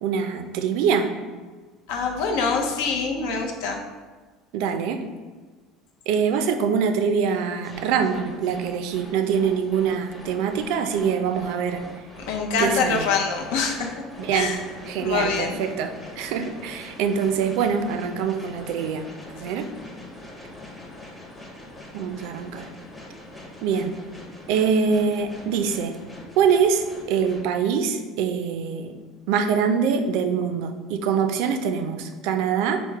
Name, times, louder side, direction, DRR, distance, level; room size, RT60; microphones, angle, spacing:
voice 1, 0.0-1.1 4.5-5.0 6.1-11.8 12.6-13.1 14.2-14.5 14.9-19.1 19.3-19.7 21.9-22.7 23.6-24.0 24.5-25.9 26.4-29.0 29.3-32.8, right 6 dB, 70° right, 7 dB, 0.4 m, -24 dB
voice 2, 1.9-3.8 12.2-14.0 14.3-14.6 15.0-15.6, left 5 dB, 80° left, 2 dB, 0.6 m, -25 dB
sound 1, 7.6-27.5, left 1 dB, 10° left, 0.6 m, -43 dB
4.5 x 2.1 x 4.6 m, 1.4 s
cardioid pair, 155°, 0 cm